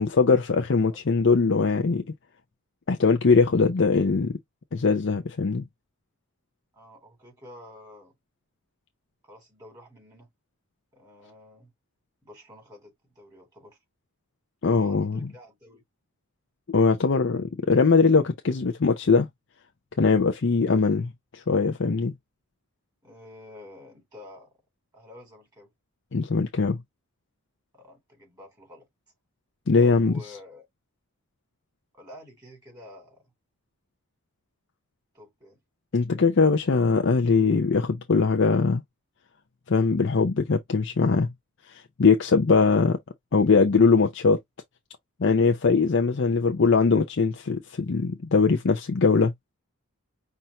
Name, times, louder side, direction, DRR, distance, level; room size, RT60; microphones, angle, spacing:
voice 1, 0.0-2.0 2.9-4.4 4.7-5.6 14.6-15.3 16.7-19.3 20.0-22.1 26.1-26.8 29.7-30.2 35.9-38.8 39.7-41.3 41.7-43.0 43.3-44.4 45.2-49.3, left 4 dB, 55° left, 0.5 m, -21 dB
voice 2, 6.7-8.1 9.2-10.3 10.9-11.7 12.2-13.8 14.7-15.8 23.0-24.5 24.9-25.7 27.7-28.9 29.8-30.6 31.9-33.2 35.1-35.6, left 1 dB, 15° right, 3.3 m, -49 dB
5.6 x 2.6 x 2.9 m
head